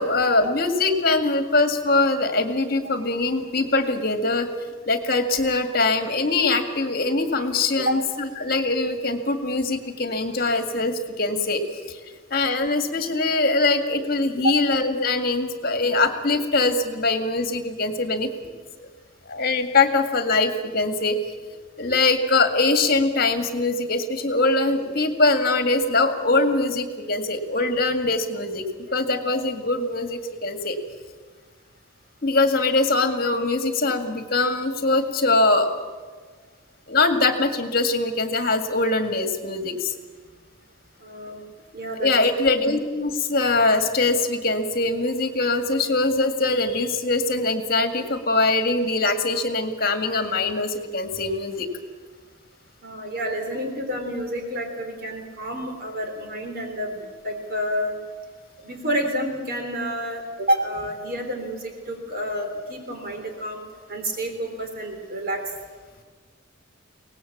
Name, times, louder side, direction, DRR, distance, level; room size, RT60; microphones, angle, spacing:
voice 1, 0.0-4.5 4.9-11.6 12.3-18.3 19.3-21.2 21.8-28.6 28.9-30.8 32.2-35.7 36.9-39.9 42.0-51.7, left 3 dB, 50° left, 7 dB, 2.0 m, -22 dB
voice 2, 41.0-41.4 41.7-42.1 52.8-58.0 58.6-63.6 63.9-65.4, equal, 50° right, 4 dB, 3.6 m, -29 dB
23.5 x 18.5 x 7.4 m, 1.5 s
head